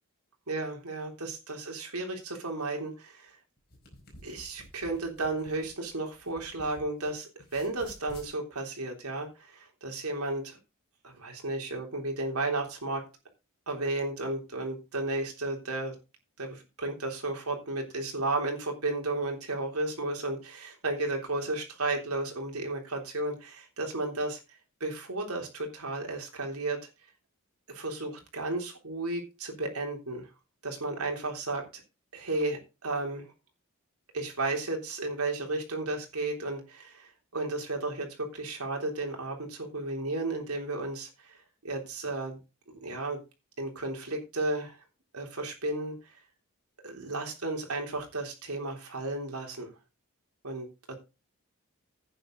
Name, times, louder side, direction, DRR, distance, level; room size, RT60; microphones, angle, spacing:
voice 1, 0.5-3.3 4.2-10.6 11.0-13.0 13.7-15.9 16.4-24.4 24.8-26.8 27.7-30.3 30.6-31.8 32.1-33.3 34.1-41.4 41.6-42.4 42.8-43.2 43.6-44.8 45.1-45.9 46.8-49.7 50.4-50.7, right 2 dB, 85° right, 2 dB, 3.4 m, -33 dB
sound 1, 3.6-7.1 7.4-8.3, left 1 dB, 45° left, 4.6 m, -52 dB
11.5 x 9.1 x 3.9 m, 0.28 s
head